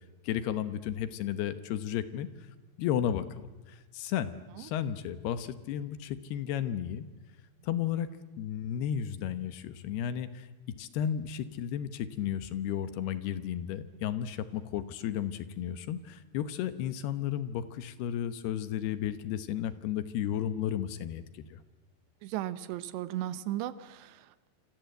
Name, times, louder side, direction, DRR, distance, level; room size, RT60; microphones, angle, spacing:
voice 1, 0.2-2.3 2.8-7.1 7.6-8.1 8.4-10.5 10.8-21.6, left 10 dB, 75° left, 12 dB, 3.1 m, -33 dB
voice 2, 22.2-24.5, right 13 dB, 85° right, 14 dB, 3.2 m, -36 dB
27.5 x 27.0 x 8.0 m, 1.1 s
omnidirectional pair, 4.9 m